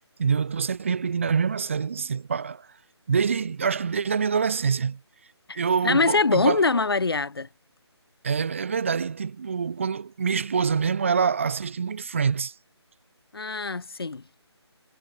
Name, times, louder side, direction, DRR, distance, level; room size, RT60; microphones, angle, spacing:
voice 1, 0.2-2.7 3.1-5.0 5.6-6.7 8.2-12.5, right 6 dB, 30° right, 2.0 m, -25 dB
voice 2, 5.5-7.5 13.3-14.2, left 3 dB, 60° left, 2.2 m, -24 dB
figure-of-eight pair, 175°, 15 cm